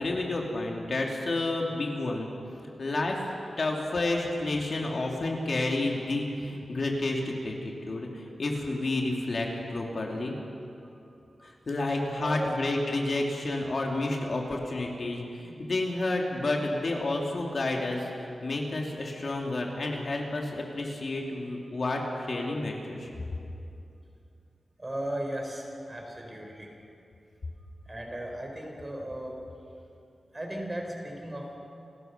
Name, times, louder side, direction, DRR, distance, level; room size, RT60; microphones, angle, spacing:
voice 1, 0.0-2.3 2.6-10.3 11.4-23.1, left 2 dB, 55° left, 0 dB, 2.9 m, -30 dB
voice 2, 11.1-11.5 11.9-12.6 24.8-26.7 27.8-29.4 30.3-31.6, right 1 dB, 25° right, 1 dB, 4.6 m, -37 dB
28.5 x 14.0 x 6.9 m, 2.7 s
wide cardioid pair, 85°, 0 cm